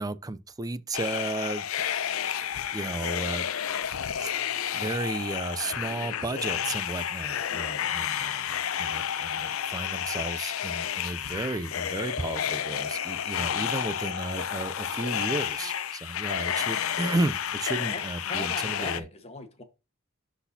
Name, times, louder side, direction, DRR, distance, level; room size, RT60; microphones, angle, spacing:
voice 1, 0.0-2.2 2.7-3.5 4.1-4.3 4.7-8.5 8.8-19.1, right 2 dB, 15° right, 0.4 m, -33 dB
sound 1, 0.9-19.0, left 9 dB, 75° left, 0.5 m, -31 dB
voice 2, 7.5-7.8 17.9-19.6, left 2 dB, 30° left, 1.2 m, -40 dB
11.5 x 4.0 x 2.7 m
head